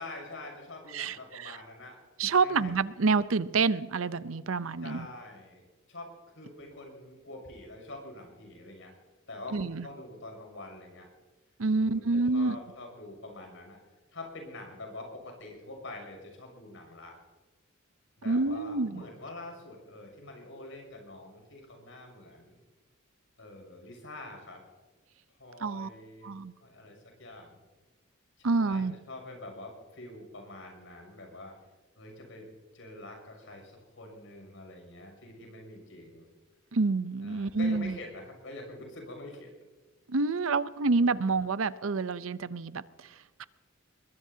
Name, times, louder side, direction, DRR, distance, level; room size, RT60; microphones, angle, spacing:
voice 1, 0.0-2.0 2.4-2.7 4.8-8.9 9.3-11.1 11.7-13.8 14.1-17.1 18.2-22.6 23.4-24.6 25.4-26.3 26.6-27.6 28.4-31.6 31.9-32.5 32.7-36.3 37.2-39.5 41.0-41.1, left 2 dB, 70° left, 2 dB, 6.7 m, -45 dB
voice 2, 0.9-1.6 2.2-5.1 9.5-9.9 11.6-12.6 18.2-19.0 25.6-25.9 26.2-26.5 28.4-29.0 36.7-38.0 40.1-43.4, right 4 dB, 85° right, 15 dB, 0.7 m, -28 dB
23.0 x 21.5 x 2.8 m, 1.3 s
head